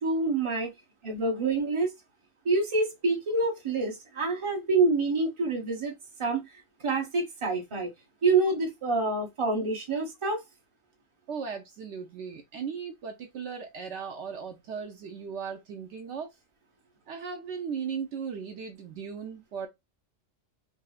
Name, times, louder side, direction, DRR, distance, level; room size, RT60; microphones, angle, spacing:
voice 1, 0.0-0.7 1.0-1.9 2.4-5.9 6.2-7.9 8.2-10.4, right 3 dB, 25° right, 0.8 m, -27 dB
voice 2, 11.3-16.3 17.1-19.7, right 6 dB, 70° right, 0.9 m, -37 dB
4.1 x 2.0 x 2.3 m
omnidirectional pair, 1.3 m